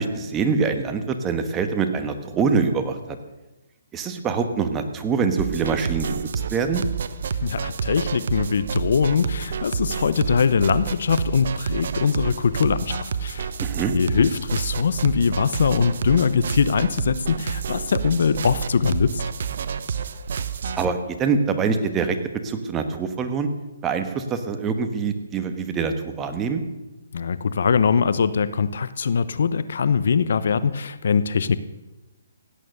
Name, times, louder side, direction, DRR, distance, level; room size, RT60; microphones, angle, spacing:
voice 1, 0.0-3.2 3.9-6.8 13.6-13.9 20.8-22.2 22.4-23.5 23.8-26.6, right 5 dB, 15° right, 7 dB, 1.3 m, -24 dB
sound 1, 5.4-20.9, right 6 dB, 60° right, 0.9 m, -29 dB
voice 2, 7.4-13.5 13.9-19.2 27.1-31.6, left 6 dB, 65° left, 15 dB, 0.7 m, -22 dB
16.5 x 9.2 x 6.6 m, 1.0 s
hypercardioid pair, 150°, 0 cm